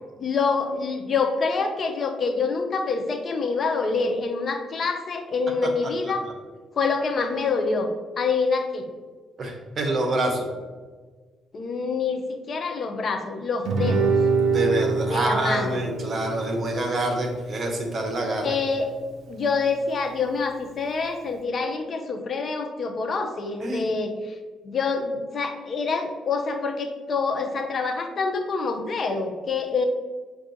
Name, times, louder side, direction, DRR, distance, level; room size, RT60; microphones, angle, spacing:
voice 1, 0.2-6.2 6.8-7.9 8.2-8.9 11.5-14.1 15.1-15.8 18.4-18.9 19.3-24.3 24.6-29.8, left 4 dB, 50° left, 5 dB, 0.5 m, -26 dB
voice 2, 9.4-10.5 14.4-18.6 23.6-23.9, right 2 dB, 45° right, 3 dB, 0.8 m, -27 dB
Guitar, 13.6-18.7, right 4 dB, 75° right, 0.4 m, -26 dB
5.8 x 2.3 x 2.7 m, 1.4 s
cardioid pair, 90°, 0 cm